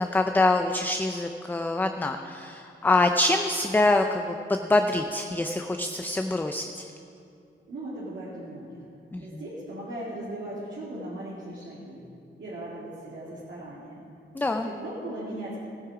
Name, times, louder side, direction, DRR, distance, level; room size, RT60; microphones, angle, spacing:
voice 1, 0.0-6.9 9.1-9.4 14.3-14.7, left 2 dB, 10° left, 5 dB, 0.4 m, -25 dB
voice 2, 7.7-8.8 9.2-12.0 12.4-14.0 14.6-15.6, right 1 dB, 65° right, -9 dB, 2.5 m, -38 dB
16.0 x 9.6 x 4.9 m, 2.5 s
wide cardioid pair, 170°, 20 cm